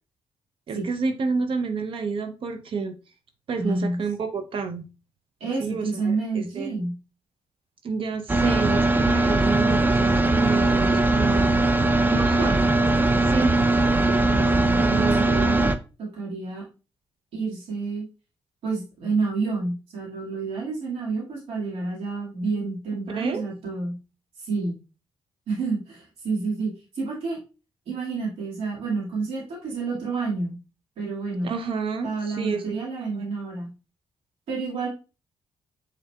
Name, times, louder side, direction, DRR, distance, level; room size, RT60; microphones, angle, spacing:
voice 1, 0.7-3.0 3.5-4.8 5.6-6.8 7.8-11.6 12.0-12.6 13.3-13.6 14.8-15.3 23.1-23.4 31.4-32.6, right 4 dB, 65° right, 6 dB, 0.6 m, -29 dB
voice 2, 3.6-4.0 5.4-7.0 14.2-15.7 16.0-16.6 17.3-18.0 18.6-24.0 24.4-24.8 25.5-27.4 27.9-30.6 31.0-31.5 32.0-33.7 34.5-34.9, right 4 dB, 85° right, -4 dB, 2.0 m, -29 dB
sound 1, 8.3-15.7, right 2 dB, 20° right, 0.5 m, -20 dB
5.6 x 3.7 x 2.3 m, 0.32 s
cardioid pair, 75°, 10 cm